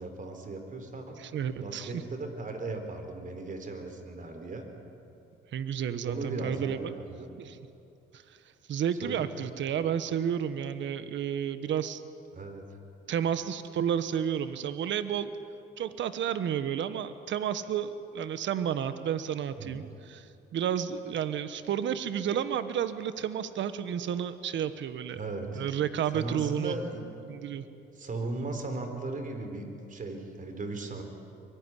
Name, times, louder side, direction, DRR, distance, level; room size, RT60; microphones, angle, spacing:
voice 1, 0.0-1.2 1.6-4.7 6.0-7.3 9.0-9.3 12.3-12.6 19.6-19.8 25.2-25.7 26.1-27.0 27.9-31.0, right 2 dB, 40° right, 6 dB, 4.2 m, -37 dB
voice 2, 1.2-2.0 5.5-6.9 7.4-7.6 8.7-12.0 13.1-15.3 15.8-25.2 25.5-26.8 27.3-27.6, right 9 dB, 70° right, 12 dB, 1.3 m, -31 dB
23.5 x 21.5 x 9.9 m, 2.8 s
cardioid pair, 90°, 20 cm